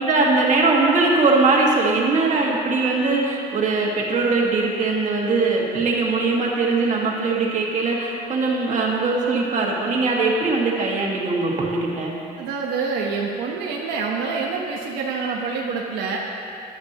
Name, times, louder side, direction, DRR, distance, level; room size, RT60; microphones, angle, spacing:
voice 1, 0.0-12.2, right 3 dB, 45° right, -2 dB, 1.8 m, -21 dB
voice 2, 12.4-16.2, right 4 dB, 85° right, -2 dB, 1.0 m, -26 dB
13.0 x 9.3 x 3.0 m, 2.6 s
cardioid pair, 110°, 17 cm